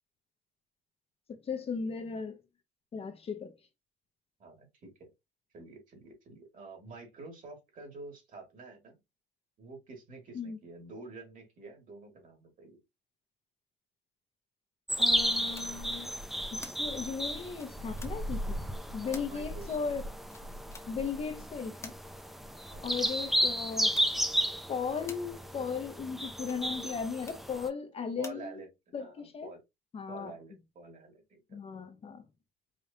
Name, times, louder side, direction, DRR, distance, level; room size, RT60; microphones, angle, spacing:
voice 1, 1.3-2.4 2.9-3.5 10.3-10.6 15.0-16.1 16.5-18.6 18.9-20.1 20.9-21.9 22.8-23.9 24.7-28.6 28.9-29.5 29.9-30.3 31.5-32.2, left 5 dB, 35° left, 0.8 m, -36 dB
voice 2, 4.4-5.1 5.5-9.0 9.6-12.8 19.0-19.8 22.6-22.9 28.2-28.7 29.0-29.6 30.1-31.6, right 3 dB, 50° right, 2.6 m, -48 dB
sound 1, 14.9-27.7, equal, ahead, 0.5 m, -33 dB
sound 2, 15.5-15.7 16.6-16.8 17.5-18.1 19.1-19.3 20.3-20.9 21.8-22.0 23.0-23.2 23.9-24.1 25.1-25.2 26.4-26.7 27.2-27.4 28.2-28.4, left 3 dB, 15° left, 1.0 m, -47 dB
5.0 x 3.1 x 2.8 m
cardioid pair, 110°, 17 cm